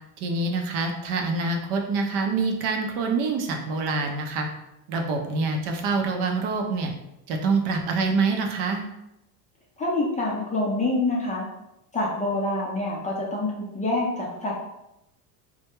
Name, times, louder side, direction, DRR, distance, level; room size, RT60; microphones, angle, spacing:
voice 1, 0.2-4.5 4.9-6.9 7.3-8.8, right 4 dB, 60° right, 3 dB, 0.6 m, -26 dB
voice 2, 9.8-11.5 11.9-14.6, left 2 dB, 15° left, -4 dB, 0.4 m, -26 dB
2.2 x 2.1 x 2.9 m, 0.87 s
supercardioid pair, 105°, 45 cm